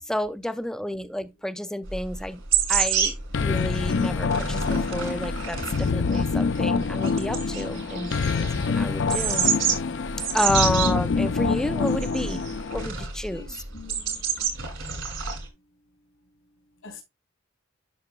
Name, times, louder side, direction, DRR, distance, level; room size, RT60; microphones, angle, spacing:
voice 1, 0.1-2.4 2.7-9.5 10.3-12.5 12.7-13.6, left 1 dB, 5° left, 0.4 m, -30 dB
sound 1, 1.8-15.4, right 7 dB, 75° right, 2.6 m, -29 dB
sound 2, 3.3-12.9, left 5 dB, 65° left, 0.5 m, -26 dB
voice 2, 13.2-14.8 16.8-17.0, left 3 dB, 85° left, 3.7 m, -47 dB
11.5 x 5.9 x 2.2 m
head